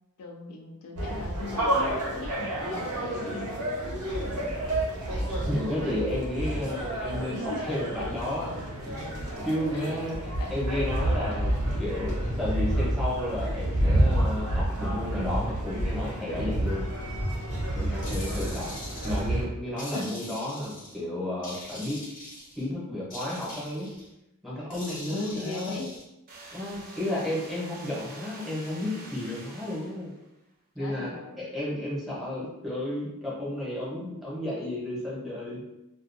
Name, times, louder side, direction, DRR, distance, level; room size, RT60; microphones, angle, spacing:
voice 1, 0.2-3.5 4.3-4.5 7.3-7.8 9.7-10.0 10.4-10.6 18.0-18.4 19.9-20.1 25.1-25.9 30.8-31.4, left 3 dB, 70° left, 2 dB, 0.4 m, -38 dB
sound 1, 1.0-19.5, right 1 dB, 90° right, 0.7 m, -29 dB
voice 2, 5.5-7.4 7.6-8.6 8.8-16.9 17.8-18.8 19.0-22.0 22.6-23.9 24.4-25.8 26.5-30.1 30.7-31.1 31.4-35.6, left 1 dB, ahead, -8 dB, 0.8 m, -32 dB
sound 2, 18.0-19.3 19.8-21.0 21.4-22.7 23.1-24.1 24.7-26.0, left 1 dB, 40° left, 0.7 m, -43 dB
sound 3, 26.3-30.3, right 2 dB, 40° right, 0.5 m, -46 dB
2.3 x 2.3 x 2.5 m, 0.91 s
head